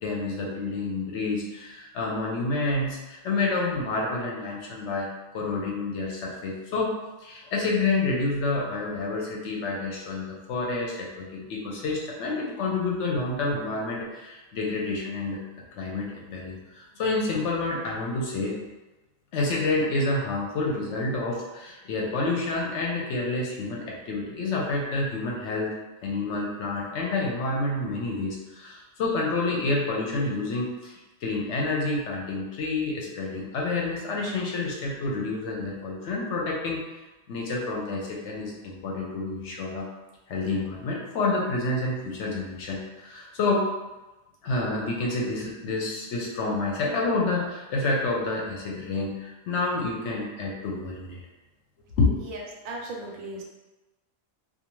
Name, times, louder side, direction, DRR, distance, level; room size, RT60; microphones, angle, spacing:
voice 1, 0.0-6.9 7.2-15.4 15.8-18.6 19.3-25.7 26.0-30.9 31.2-36.8 37.3-39.9 40.3-43.7 44.4-51.2 52.0-52.2, left 3 dB, 70° left, -2 dB, 0.8 m, -28 dB
voice 2, 52.6-53.4, right 2 dB, 85° right, 0 dB, 1.0 m, -36 dB
2.5 x 2.3 x 2.9 m, 1.1 s
omnidirectional pair, 1.4 m